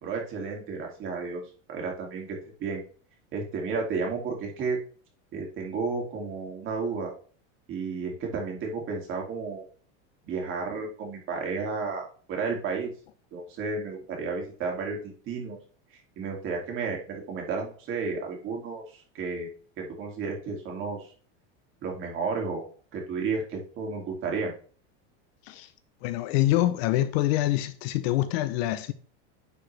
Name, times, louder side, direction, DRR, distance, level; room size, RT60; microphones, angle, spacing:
voice 1, 0.0-1.4 1.7-2.3 2.6-2.8 3.3-4.8 5.3-7.1 7.7-9.6 10.2-12.9 13.3-15.6 16.2-19.5 19.8-21.1 21.8-22.7 22.9-24.5, right 4 dB, 35° right, 2.5 m, -32 dB
voice 2, 26.0-28.9, left 15 dB, 60° left, 0.8 m, -25 dB
9.9 x 4.9 x 3.3 m
supercardioid pair, 155°, 35 cm